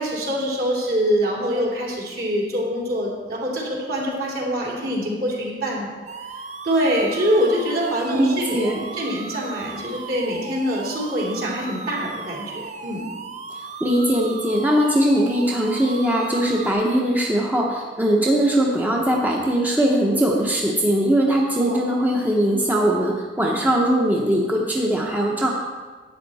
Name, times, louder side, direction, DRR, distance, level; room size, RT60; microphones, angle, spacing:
voice 1, 0.0-5.9 6.6-13.1 21.6-21.9, equal, 55° right, -3 dB, 2.9 m, -24 dB
sound 1, 6.1-16.7, right 4 dB, 40° right, 0.6 m, -36 dB
voice 2, 8.1-8.8 13.8-25.5, right 1 dB, 10° right, -2 dB, 0.9 m, -20 dB
11.5 x 8.7 x 4.2 m, 1.4 s
head